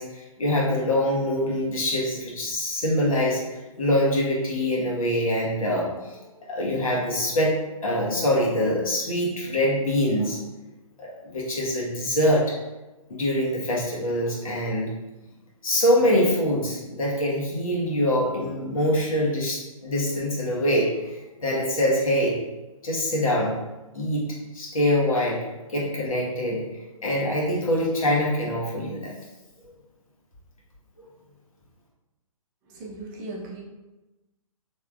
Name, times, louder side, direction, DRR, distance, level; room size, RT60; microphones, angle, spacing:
voice 1, 0.0-3.4 3.8-6.2 6.5-7.5 7.8-10.4 11.0-12.4 13.1-14.9 15.6-21.2 21.4-22.3 22.8-23.6 23.9-24.2 24.5-25.4 25.7-29.1, left 1 dB, 70° left, -4 dB, 1.1 m, -24 dB
voice 2, 32.7-33.6, right 2 dB, 35° right, -2 dB, 0.7 m, -37 dB
3.4 x 2.9 x 2.3 m, 1.1 s
figure-of-eight pair, 125°, 18 cm